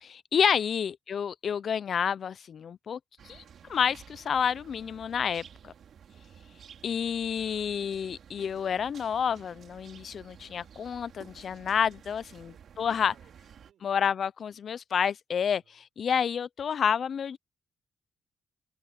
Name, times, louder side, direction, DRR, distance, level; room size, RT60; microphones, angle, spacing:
voice 1, 0.0-3.0 3.3-3.4 3.7-5.7 6.8-12.5 12.8-13.1 13.8-17.4, left 7 dB, 55° left, 0.5 m, -29 dB
sound 1, 3.2-13.7, right 8 dB, 65° right, 4.3 m, -52 dB
voice 2, 12.2-13.9 15.5-15.8, right 10 dB, 80° right, 6.3 m, -65 dB
cardioid pair, 130°, 0 cm